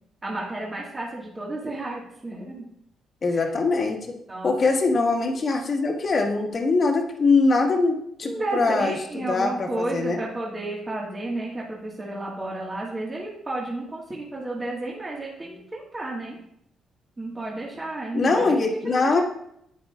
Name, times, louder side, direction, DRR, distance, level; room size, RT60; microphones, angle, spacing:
voice 1, 0.2-2.7 3.3-3.5 4.3-4.5 8.2-16.4 17.2-18.6 18.8-19.2, right 2 dB, 20° right, -3 dB, 1.6 m, -32 dB
voice 2, 3.2-4.0 4.4-8.9 9.3-10.2 18.1-19.2, left 3 dB, 45° left, 2 dB, 1.6 m, -22 dB
9.1 x 9.1 x 2.4 m, 0.73 s
cardioid pair, 90°, 0 cm